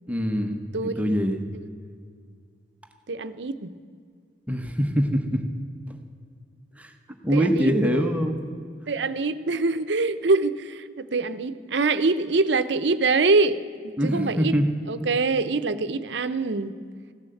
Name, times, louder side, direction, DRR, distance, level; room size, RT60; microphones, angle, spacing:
voice 1, 0.1-1.4 4.5-5.4 5.9-6.0 6.8-6.9 7.2-8.4 14.0-14.6 15.0-15.1, equal, 10° right, 4 dB, 1.0 m, -24 dB
voice 2, 0.7-1.2 1.5-1.7 3.1-3.7 7.3-8.1 8.9-14.5 14.9-16.7, right 3 dB, 70° right, 12 dB, 0.7 m, -24 dB
16.0 x 10.5 x 7.7 m, 2.2 s
head